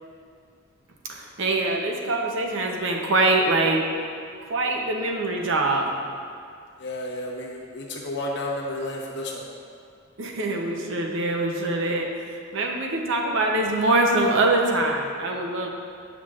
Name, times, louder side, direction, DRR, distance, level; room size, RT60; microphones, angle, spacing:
voice 1, 1.1-3.8 4.5-5.9 10.2-15.7, right 2 dB, 65° right, 1 dB, 0.8 m, -24 dB
voice 2, 6.8-9.5, left 1 dB, 55° left, -2 dB, 1.0 m, -31 dB
9.0 x 5.9 x 2.5 m, 2.3 s
head